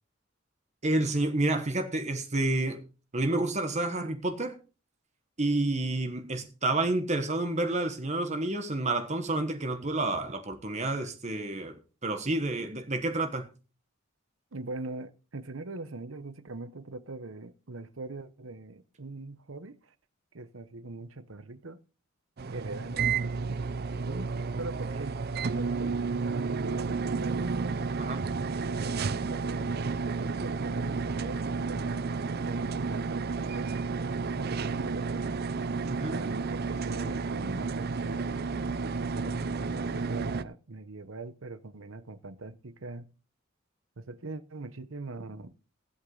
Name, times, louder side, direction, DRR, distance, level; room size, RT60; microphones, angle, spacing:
voice 1, 0.8-2.8 3.1-4.6 5.4-13.5 28.0-28.2 35.9-36.2, right 2 dB, 35° right, 1.3 m, -29 dB
voice 2, 14.5-19.9 20.3-21.8 22.5-23.6 24.0-24.3 24.6-27.6 28.6-35.3 36.1-38.6 39.0-43.1 44.0-45.5, right 3 dB, 80° right, 1.0 m, -41 dB
sound 1, 22.4-40.4, right 4 dB, 50° right, 0.5 m, -31 dB
16.5 x 8.4 x 4.0 m
head